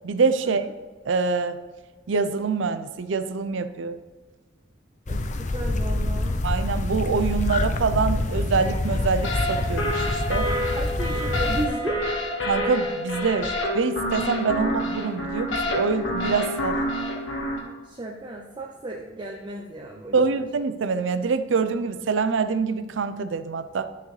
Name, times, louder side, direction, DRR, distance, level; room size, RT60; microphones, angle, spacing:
voice 1, 0.0-0.6 1.1-1.6 2.1-4.0 6.4-10.5 12.4-16.8 20.1-23.9, right 5 dB, 75° right, 11 dB, 0.5 m, -25 dB
sound 1, 5.1-11.7, left 2 dB, 40° left, 0.5 m, -26 dB
voice 2, 5.1-6.4 10.7-12.1 17.8-20.4, right 1 dB, 25° right, 1 dB, 0.6 m, -34 dB
sound 2, 9.2-17.6, left 1 dB, 75° left, 1.4 m, -28 dB
10.5 x 6.6 x 3.2 m, 1.3 s
head